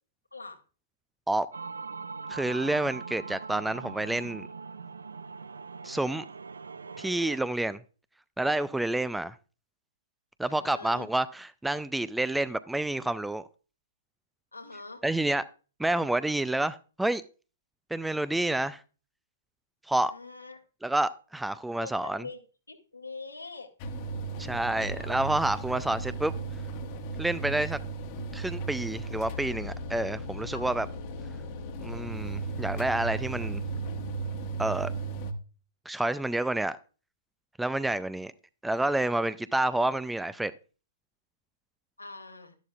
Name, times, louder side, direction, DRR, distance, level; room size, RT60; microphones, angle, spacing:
sound 1, 1.5-7.4, right 4 dB, 70° right, 0.5 m, -41 dB
voice 1, 2.3-4.5 5.8-6.3 7.0-7.8 8.4-9.4 10.4-13.5 15.0-15.4 15.8-17.2 17.9-18.8 19.9-20.1 20.8-22.2 24.4-26.3 27.2-27.8 28.3-30.9 31.8-33.6 34.6-34.9 35.9-36.8 37.6-38.3 38.6-40.5, right 2 dB, 5° right, 0.4 m, -29 dB
voice 2, 10.4-11.1 14.5-15.0 20.1-20.6 21.8-22.4 22.7-23.7 24.9-25.1 25.7-25.8 30.5-30.7 42.0-42.6, left 3 dB, 80° left, 1.8 m, -43 dB
sound 2, 23.8-35.3, right 4 dB, 35° left, 1.2 m, -36 dB
sound 3, 29.2-34.9, left 4 dB, 60° left, 0.8 m, -41 dB
12.0 x 11.0 x 2.4 m
figure-of-eight pair, 115°, 0 cm